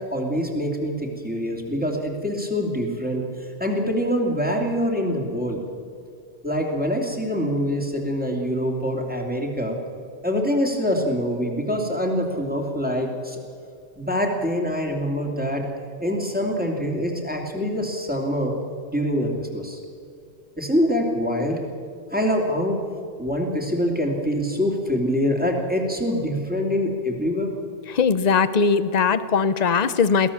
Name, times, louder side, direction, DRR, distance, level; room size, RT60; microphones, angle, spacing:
voice 1, 0.0-3.3 3.6-5.6 6.4-9.8 10.2-13.4 14.0-15.7 16.0-18.6 18.9-19.8 20.6-21.6 22.1-22.8 23.2-27.5, equal, 10° right, 1 dB, 2.7 m, -25 dB
voice 2, 27.9-30.3, left 5 dB, 40° left, 14 dB, 0.8 m, -20 dB
22.5 x 16.5 x 7.2 m, 2.3 s
omnidirectional pair, 1.2 m